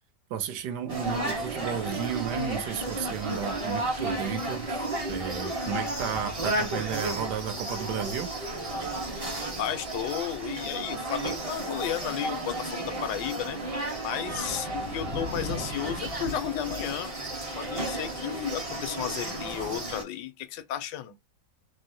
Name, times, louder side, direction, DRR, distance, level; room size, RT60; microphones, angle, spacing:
voice 1, 0.3-4.8 5.1-8.3, right 9 dB, 75° right, 1.1 m, -33 dB
sound 1, 0.9-20.0, right 1 dB, 30° right, 0.7 m, -33 dB
sound 2, 2.7-16.8, left 1 dB, 45° right, 1.5 m, -45 dB
voice 2, 9.6-13.6 14.0-17.1 17.5-21.1, left 10 dB, 85° left, 1.2 m, -33 dB
3.6 x 2.0 x 2.6 m
omnidirectional pair, 1.9 m